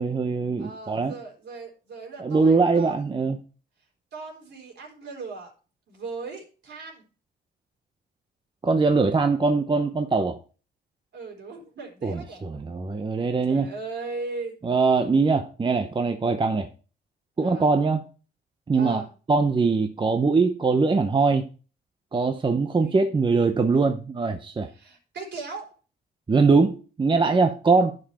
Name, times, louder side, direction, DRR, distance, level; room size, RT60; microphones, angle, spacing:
voice 1, 0.0-1.1 2.2-3.4 8.6-10.4 12.0-12.2 12.5-13.7 14.6-16.7 17.4-18.1 18.7-19.0 19.3-21.5 22.1-24.7 26.3-28.0, right 4 dB, 25° right, 7 dB, 0.8 m, -22 dB
voice 2, 0.6-3.1 4.1-5.5 5.9-7.0 11.1-12.4 13.5-14.5 17.4-17.7 18.8-19.1 22.4-22.9 24.7-25.7, right 3 dB, 60° right, 0 dB, 3.8 m, -38 dB
11.0 x 5.3 x 4.4 m, 0.36 s
cardioid pair, 90°, 20 cm